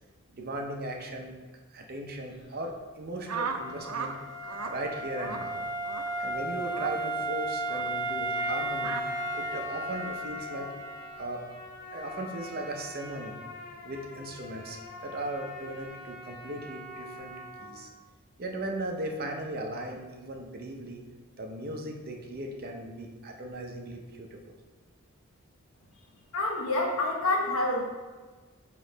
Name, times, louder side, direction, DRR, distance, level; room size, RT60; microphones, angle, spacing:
voice 1, 0.3-1.3 1.7-4.2 4.6-5.6 6.2-9.0 9.3-10.7 11.1-11.5 11.9-13.4 13.8-17.3 17.6-17.9 18.4-21.0 21.4-24.4, right 1 dB, 45° right, 2 dB, 0.6 m, -37 dB
sound 1, 3.3-4.1 4.4-4.7 5.2-5.5 5.8-6.1 6.7-6.9 7.7-7.9 8.8-9.0, right 5 dB, 90° right, 0.6 m, -35 dB
Wind instrument woodwind instrument, 3.5-11.3, right 1 dB, 20° left, 0.6 m, -34 dB
Trumpet, 8.3-17.8, left 2 dB, 40° left, 0.9 m, -44 dB
voice 2, 26.3-27.9, left 2 dB, 65° left, -1 dB, 1.0 m, -27 dB
6.2 x 3.1 x 5.0 m, 1.4 s
head